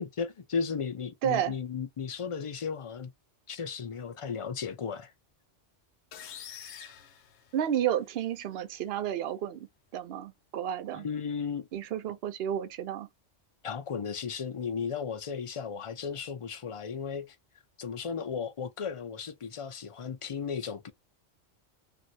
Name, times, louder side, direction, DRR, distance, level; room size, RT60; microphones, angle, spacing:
voice 1, 0.0-3.1 3.5-5.1 10.9-11.7 13.6-17.4 17.8-20.9, left 6 dB, 50° left, 0.4 m, -35 dB
voice 2, 1.2-1.5 7.5-9.7 9.9-11.1 11.7-13.1, right 10 dB, 65° right, 0.8 m, -31 dB
sound 1, 6.1-8.1, left 9 dB, 70° left, 0.8 m, -46 dB
3.0 x 2.5 x 2.7 m
omnidirectional pair, 1.2 m